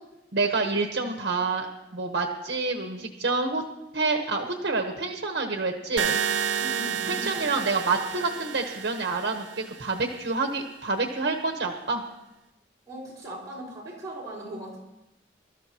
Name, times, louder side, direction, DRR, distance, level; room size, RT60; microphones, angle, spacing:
voice 1, 0.3-1.7 1.9-3.6 3.9-6.2 7.1-12.0, right 3 dB, 65° right, 3 dB, 1.0 m, -28 dB
sound 1, 6.0-10.0, right 7 dB, 80° right, 0.8 m, -30 dB
voice 2, 6.6-7.4 12.9-14.8, right 1 dB, 20° right, -7 dB, 4.5 m, -39 dB
24.5 x 13.0 x 2.9 m, 0.97 s
head